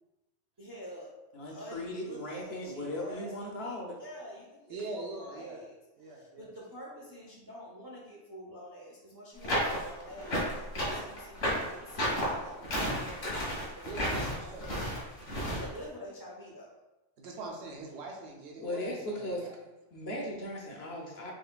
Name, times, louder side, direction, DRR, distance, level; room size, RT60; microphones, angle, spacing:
voice 1, 0.6-1.1 1.4-5.7 6.0-14.8 15.4-16.8, equal, 20° right, -5 dB, 0.6 m, -47 dB
voice 2, 1.3-4.0 18.6-19.5 19.9-21.3, left 1 dB, 60° left, -1 dB, 0.9 m, -37 dB
voice 3, 4.7-5.6 6.0-6.5 13.8-14.7 17.2-19.5, right 2 dB, 65° right, 0 dB, 1.0 m, -42 dB
sound 1, 9.4-15.6, equal, 90° left, 1.7 m, -32 dB
4.9 x 3.0 x 2.2 m, 1.0 s
omnidirectional pair, 1.3 m